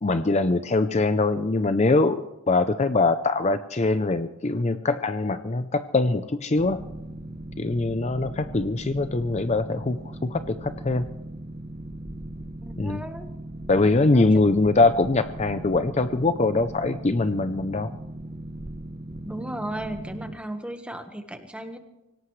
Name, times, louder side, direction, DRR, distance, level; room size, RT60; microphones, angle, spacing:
voice 1, 0.0-6.8 7.6-11.1 12.8-13.0 13.7-17.9, left 3 dB, 30° left, 10 dB, 0.5 m, -23 dB
Boat Water vehicle, 6.6-20.4, right 1 dB, 30° right, 1.0 m, -38 dB
voice 2, 12.6-13.3 14.1-14.3 19.2-21.8, right 1 dB, 5° right, 6 dB, 1.4 m, -35 dB
25.5 x 17.5 x 3.2 m, 1.0 s
head